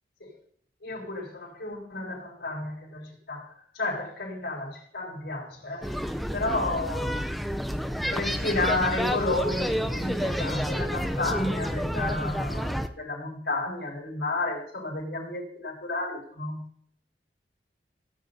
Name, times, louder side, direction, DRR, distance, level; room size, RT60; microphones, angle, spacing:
voice 1, 0.8-7.2 8.1-16.6, left 2 dB, 70° left, -3 dB, 5.2 m, -32 dB
sound 1, 5.8-12.9, equal, ahead, 0.5 m, -30 dB
17.5 x 9.4 x 2.7 m, 0.62 s
head